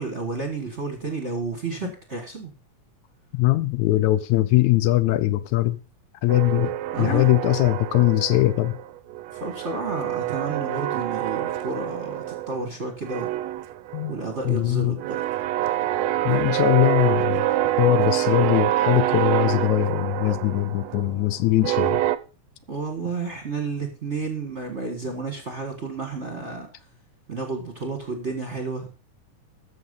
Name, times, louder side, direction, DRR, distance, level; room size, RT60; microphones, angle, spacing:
voice 1, 0.0-2.5 6.9-7.3 9.3-13.3 14.1-15.5 22.7-26.8 27.3-28.9, right 4 dB, 30° right, 1.4 m, -31 dB
voice 2, 3.3-5.8 6.2-6.7 7.0-8.7 13.9-14.1 14.5-15.0 16.3-17.4 17.8-22.0, left 17 dB, 80° left, 1.9 m, -21 dB
sound 1, 6.3-8.8 9.1-12.7 13.0-22.2, right 14 dB, 75° right, 1.6 m, -26 dB
13.0 x 6.6 x 5.4 m
omnidirectional pair, 3.5 m